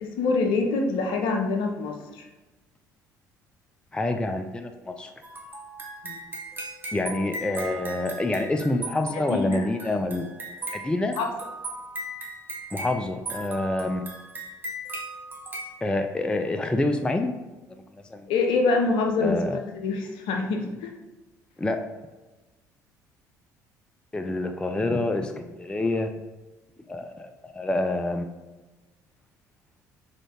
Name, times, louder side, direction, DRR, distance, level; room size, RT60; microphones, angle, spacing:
voice 1, 0.0-2.3 6.0-6.2 9.3-9.7 11.2-11.3 18.3-20.9, left 3 dB, 60° left, 4 dB, 0.6 m, -25 dB
voice 2, 3.9-5.1 6.9-10.3 10.7-11.2 12.7-14.1 15.8-17.3 17.9-18.2 19.2-19.6 21.6-21.8 24.1-26.1 26.9-28.3, left 2 dB, 10° left, 7 dB, 0.3 m, -27 dB
sound 1, 5.2-15.8, right 2 dB, 20° right, 1.0 m, -38 dB
3.7 x 3.5 x 3.5 m, 1.1 s
figure-of-eight pair, 55°, 9 cm